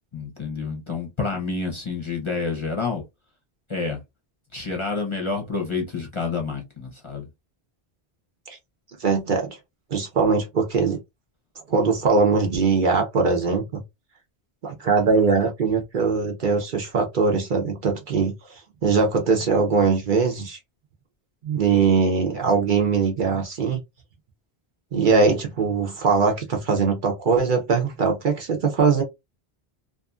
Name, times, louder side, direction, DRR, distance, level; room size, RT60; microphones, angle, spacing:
voice 1, 0.1-3.0 3.7-4.0 4.5-7.2, left 4 dB, 30° left, 0.7 m, -28 dB
voice 2, 9.0-9.5 9.9-11.0 11.7-13.8 14.6-20.6 21.4-23.8 24.9-29.0, right 4 dB, 55° right, 0.7 m, -21 dB
2.7 x 2.4 x 2.3 m
omnidirectional pair, 1.1 m